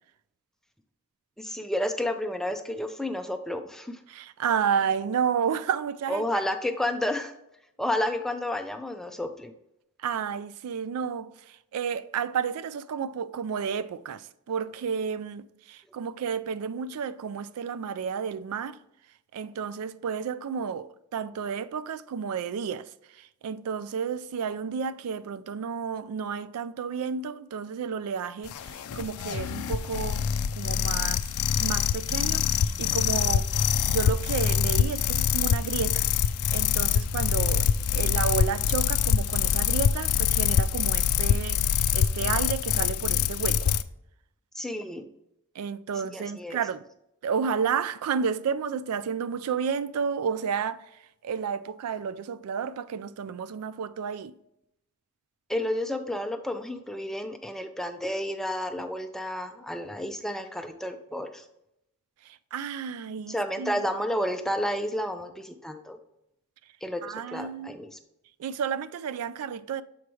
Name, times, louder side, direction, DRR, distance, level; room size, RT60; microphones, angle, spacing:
voice 1, 1.4-4.0 6.1-7.3 7.8-9.5 44.5-45.1 46.1-46.6 55.5-61.4 63.3-66.0 66.8-68.0, left 1 dB, ahead, 0.4 m, -31 dB
voice 2, 4.1-6.2 10.0-18.8 19.3-22.9 23.2-31.2 31.6-33.5 33.9-36.0 36.5-41.6 41.9-43.7 45.6-46.8 47.2-50.8 51.2-54.3 62.3-63.8 67.0-67.7 68.4-69.8, right 6 dB, 80° right, 0.3 m, -31 dB
sound 1, 28.4-43.8, left 8 dB, 75° left, 0.4 m, -25 dB
7.0 x 4.8 x 3.0 m
head